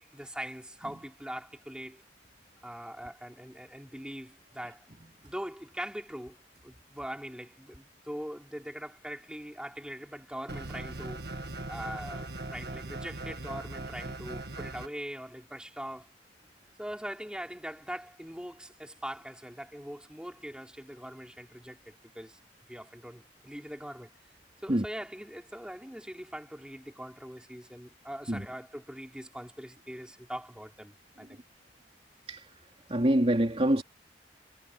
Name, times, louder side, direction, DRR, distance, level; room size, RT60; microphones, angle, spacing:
voice 1, 0.0-2.0 2.6-4.8 5.2-6.4 6.6-11.2 11.7-16.1 16.8-22.4 22.7-24.1 24.6-31.4, equal, 5° right, 4.7 m, -42 dB
sound 1, 10.5-14.9, right 2 dB, 60° right, 1.6 m, -39 dB
voice 2, 32.9-33.8, right 1 dB, 35° right, 2.9 m, -25 dB
head